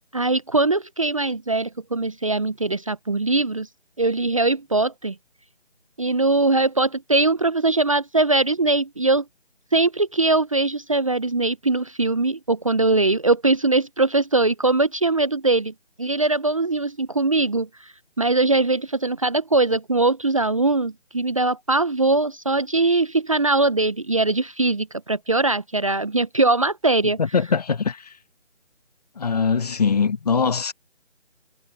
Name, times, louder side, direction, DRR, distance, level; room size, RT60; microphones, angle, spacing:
voice 1, 0.1-3.7 4.0-5.1 6.0-9.2 9.7-15.7 16.0-17.7 18.2-27.2, right 2 dB, 30° right, 0.8 m, -21 dB
voice 2, 27.2-28.0 29.2-30.7, left 5 dB, 35° left, 1.8 m, -22 dB
figure-of-eight pair, 165°, 35 cm